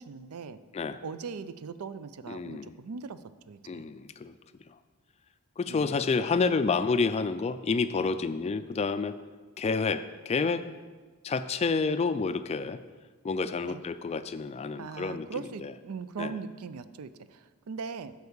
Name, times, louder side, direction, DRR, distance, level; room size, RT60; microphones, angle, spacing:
voice 1, 0.0-0.6 1.0-3.2 3.5-3.8 5.7-5.9 13.6-13.8 14.8-18.1, right 5 dB, 75° right, 13 dB, 0.4 m, -40 dB
voice 2, 2.3-2.7 3.6-4.4 4.7-4.8 5.6-9.2 9.6-10.7 11.2-12.8 13.2-15.7 16.2-16.4, left 4 dB, 30° left, 12 dB, 0.3 m, -29 dB
8.1 x 4.7 x 7.0 m, 1.4 s
head